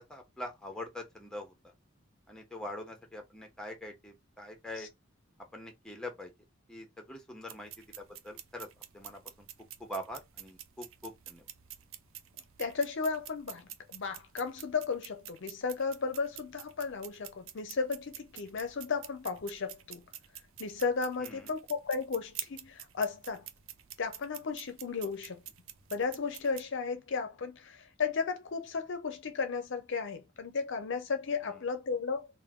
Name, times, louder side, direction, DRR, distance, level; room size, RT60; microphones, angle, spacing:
voice 1, 0.1-1.5 2.3-4.9 5.5-6.3 6.7-7.7 8.0-8.7 8.9-9.5 9.8-11.4 21.2-21.5, left 1 dB, 5° left, 1.0 m, -43 dB
sound 1, 7.5-26.6, right 12 dB, 75° right, 0.5 m, -49 dB
voice 2, 12.6-20.0 20.6-23.5 24.0-25.4 25.9-32.3, left 5 dB, 65° left, 0.6 m, -34 dB
3.6 x 2.6 x 3.6 m
head